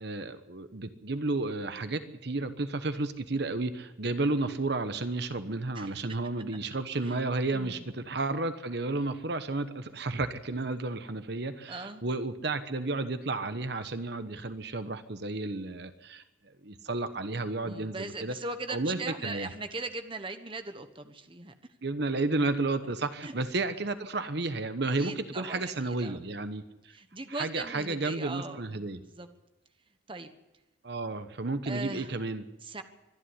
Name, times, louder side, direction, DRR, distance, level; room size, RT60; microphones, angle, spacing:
voice 1, 0.0-16.2 16.6-18.3 18.7-19.5 21.8-26.6 27.4-29.0 30.8-32.4, right 2 dB, 60° right, 10 dB, 1.1 m, -32 dB
voice 2, 7.5-7.8 11.7-12.0 17.6-21.5 23.2-23.3 25.0-26.2 26.9-29.3 30.1-30.3 31.6-32.1 32.6-32.8, right 3 dB, 25° right, 8 dB, 1.2 m, -39 dB
24.5 x 11.0 x 9.9 m, 0.99 s
head